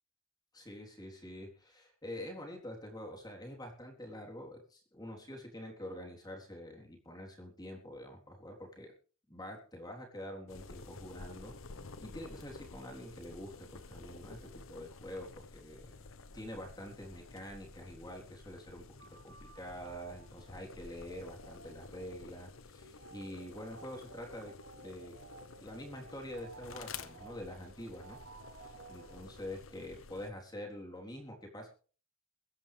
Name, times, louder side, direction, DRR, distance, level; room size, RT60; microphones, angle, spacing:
voice 1, 0.5-8.9 9.3-11.6 12.0-15.9 16.3-25.2 25.6-28.2 28.9-31.7, left 1 dB, 20° left, 1 dB, 3.7 m, -46 dB
sound 1, 10.5-30.3, left 4 dB, 65° left, 0.9 m, -52 dB
sound 2, 19.0-29.7, right 4 dB, 50° right, 1.2 m, -56 dB
22.5 x 11.0 x 3.4 m, 0.39 s
head